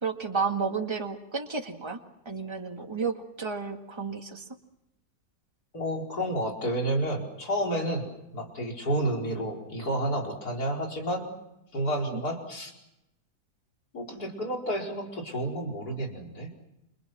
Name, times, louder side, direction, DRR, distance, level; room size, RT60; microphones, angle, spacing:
voice 1, 0.0-4.5 12.1-12.2, right 5 dB, 15° right, 3 dB, 2.1 m, -32 dB
voice 2, 5.7-8.1 8.3-11.3 11.7-12.7 13.9-16.5, right 1 dB, 75° left, 0 dB, 5.3 m, -30 dB
29.5 x 27.0 x 6.1 m, 0.87 s
omnidirectional pair, 1.7 m